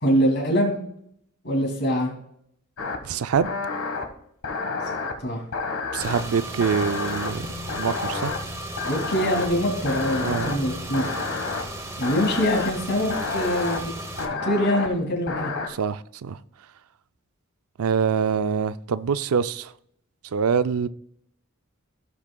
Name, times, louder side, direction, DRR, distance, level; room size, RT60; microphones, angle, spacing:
voice 1, 0.0-0.8 1.4-2.1 5.2-5.4 8.8-11.0 12.0-15.5, equal, 55° left, 2.6 m, -24 dB
sound 1, 2.8-3.0 3.4-4.1 4.4-5.1 5.5-6.2 6.6-7.3 7.7-8.4 8.8-9.5 9.8-10.5 10.9-11.6 12.0-12.7 13.1-13.8 14.2-14.9 15.3-15.7, left 4 dB, 80° left, 1.3 m, -29 dB
voice 2, 3.0-3.5 5.9-7.4 7.8-8.3 10.2-10.5 15.7-16.4 17.8-19.7 20.3-20.9, right 6 dB, 85° right, 0.4 m, -24 dB
Car / Engine, 6.0-14.3, right 1 dB, 15° right, 0.9 m, -35 dB
17.0 x 6.1 x 2.3 m
head